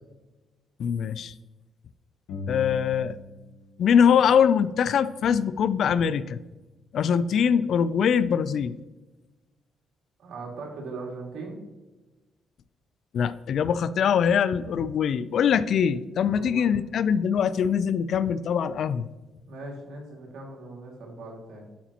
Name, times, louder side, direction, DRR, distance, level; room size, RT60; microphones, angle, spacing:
voice 1, 0.8-1.3 2.5-3.2 3.8-6.4 6.9-8.7 13.1-19.1, left 7 dB, 65° left, 16 dB, 0.3 m, -23 dB
sound 1, 2.3-5.8, left 5 dB, 80° left, 1.0 m, -41 dB
voice 2, 10.2-11.6 16.2-16.7 19.5-21.7, right 3 dB, 75° right, -1 dB, 2.2 m, -39 dB
11.5 x 4.9 x 2.9 m, 1.1 s
cardioid pair, 90°, 0 cm